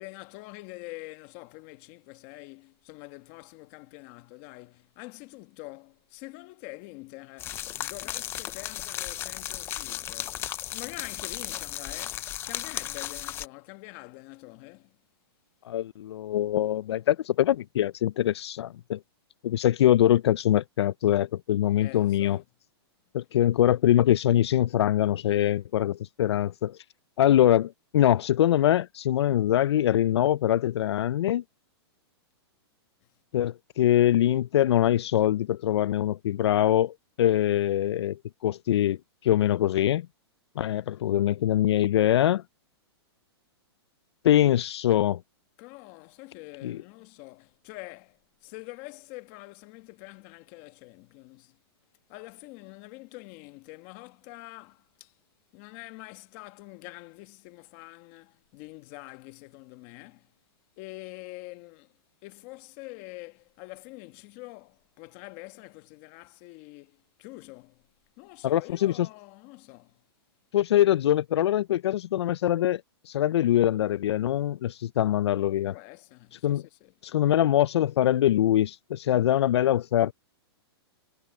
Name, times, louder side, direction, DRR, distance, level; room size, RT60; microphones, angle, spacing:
voice 1, 0.0-10.4 10.7-15.0 21.8-22.4 45.6-51.6 52.1-55.1 55.5-60.3 60.8-61.9 62.2-67.8 68.2-70.0 75.7-76.9, left 22 dB, 30° left, 1.3 m, -45 dB
sound 1, 7.4-13.5, left 13 dB, 15° left, 0.5 m, -35 dB
voice 2, 15.6-19.0 19.4-22.4 23.1-26.8 27.2-31.4 33.3-40.1 40.6-42.4 44.2-45.2 46.6-46.8 68.4-69.1 70.5-75.7 76.4-76.6 77.0-80.1, left 12 dB, 75° left, 0.4 m, -23 dB
hypercardioid pair, 160°, 14 cm